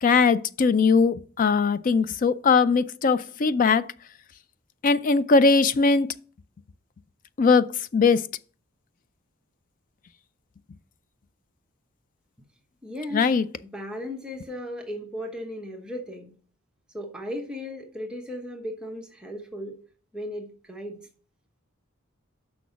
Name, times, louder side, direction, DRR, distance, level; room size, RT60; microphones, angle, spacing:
voice 1, 0.0-3.9 4.8-6.1 7.4-7.7 7.9-8.3 13.1-13.5, left 4 dB, 40° left, 0.4 m, -20 dB
voice 2, 12.8-13.2 13.7-16.3 16.9-19.8 20.1-21.0, equal, 5° right, 1.0 m, -36 dB
6.2 x 6.0 x 5.7 m
head